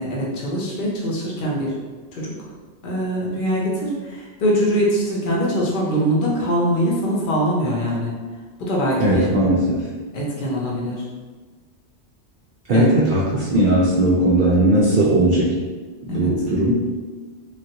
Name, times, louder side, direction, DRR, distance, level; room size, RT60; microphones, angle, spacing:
voice 1, 0.0-1.8 2.1-2.3 2.8-8.1 8.6-9.3 10.1-11.0 12.7-12.9 16.1-16.3, equal, 50° left, -4 dB, 0.8 m, -22 dB
voice 2, 9.0-9.8 12.7-15.6 16.1-16.9, right 1 dB, 60° right, -5 dB, 0.6 m, -18 dB
3.3 x 2.4 x 2.8 m, 1.4 s
omnidirectional pair, 1.2 m